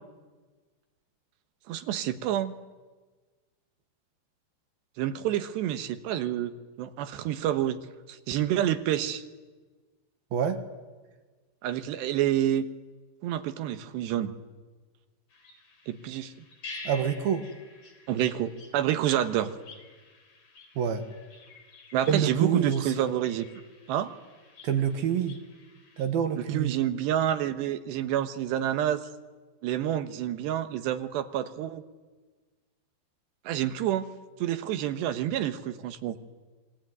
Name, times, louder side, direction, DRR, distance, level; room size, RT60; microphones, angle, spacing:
voice 1, 1.7-2.5 5.0-7.8 8.1-9.2 11.6-12.6 13.2-14.3 15.9-16.3 18.1-19.5 21.9-23.5 23.9-24.1 26.4-29.0 29.6-31.8 33.5-34.1 34.4-36.2, right 11 dB, 80° right, 9 dB, 3.4 m, -28 dB
voice 2, 10.3-10.6 16.8-17.4 20.8-21.0 22.1-23.0 24.6-25.4 26.0-26.8, right 8 dB, 65° right, 7 dB, 3.2 m, -27 dB
sound 1, 15.3-26.0, left 3 dB, 35° left, 4.3 m, -49 dB
27.5 x 22.5 x 9.4 m, 1.3 s
omnidirectional pair, 5.0 m